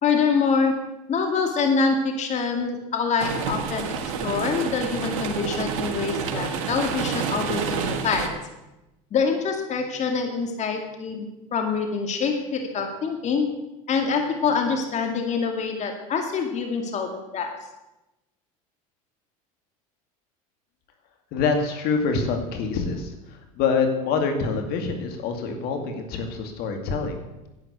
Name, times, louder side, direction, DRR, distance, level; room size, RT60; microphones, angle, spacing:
voice 1, 0.0-0.7 1.1-8.3 9.1-13.5 13.9-17.5, left 5 dB, 40° left, 4 dB, 2.2 m, -25 dB
sound 1, 3.2-8.3, right 6 dB, 75° right, 2.0 m, -29 dB
voice 2, 21.3-27.2, left 5 dB, 60° left, 5 dB, 2.3 m, -26 dB
11.0 x 9.2 x 8.2 m, 0.98 s
hypercardioid pair, 90°, 18 cm